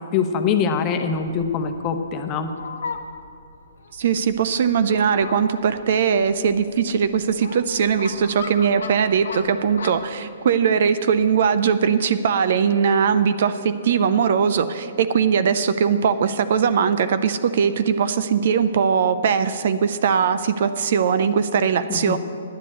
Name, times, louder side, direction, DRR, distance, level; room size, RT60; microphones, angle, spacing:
voice 1, 0.1-2.5 21.9-22.2, left 6 dB, 30° left, 6 dB, 0.9 m, -23 dB
Fowl, 1.1-10.1, left 4 dB, 75° left, 0.9 m, -38 dB
voice 2, 4.0-22.2, right 7 dB, 60° right, 12 dB, 0.6 m, -20 dB
10.5 x 7.5 x 8.0 m, 2.5 s
hypercardioid pair, 130°, 0 cm